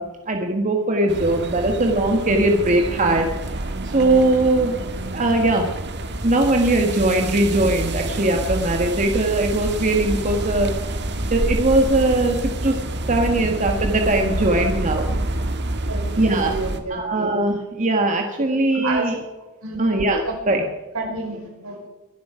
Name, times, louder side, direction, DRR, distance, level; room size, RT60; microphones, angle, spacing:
voice 1, 0.0-3.3 3.8-4.8 5.1-11.0 11.3-12.4 12.6-12.8 13.1-15.1 16.2-16.6 16.9-19.1 19.8-20.6, right 2 dB, 35° right, 2 dB, 1.7 m, -20 dB
sound 1, 1.1-16.8, right 1 dB, 50° right, 1.7 m, -28 dB
voice 2, 15.9-17.3 18.8-19.1 19.6-19.8 20.3-20.4 20.9-21.9, right 3 dB, 70° right, 0 dB, 5.7 m, -30 dB
23.0 x 12.0 x 5.1 m, 1.1 s
head